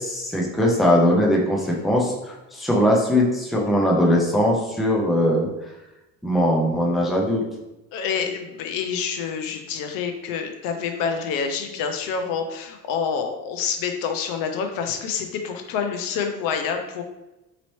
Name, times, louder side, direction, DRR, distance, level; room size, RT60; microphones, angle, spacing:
voice 1, 0.0-5.5 6.2-7.4, left 1 dB, ahead, -2 dB, 0.4 m, -20 dB
voice 2, 7.9-17.0, left 6 dB, 75° left, 5 dB, 0.7 m, -27 dB
4.0 x 3.0 x 3.0 m, 0.98 s
cardioid pair, 150°, 34 cm